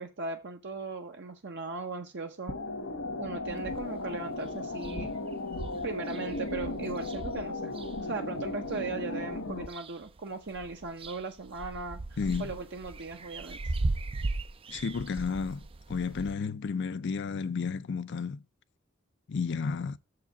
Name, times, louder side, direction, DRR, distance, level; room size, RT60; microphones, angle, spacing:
voice 1, 0.0-2.6 3.2-5.1 5.8-7.7 8.0-12.0 12.4-13.7, right 3 dB, 60° right, 0.9 m, -38 dB
sound 1, 2.5-9.7, left 2 dB, 80° left, 1.6 m, -36 dB
sound 2, 3.5-4.1 4.4-4.5 4.8-8.8 9.3-10.2 10.5-16.3, right 2 dB, 25° right, 0.4 m, -38 dB
voice 2, 12.2-12.6 14.7-18.4 19.3-20.0, left 5 dB, 60° left, 0.4 m, -32 dB
6.9 x 4.9 x 6.9 m
head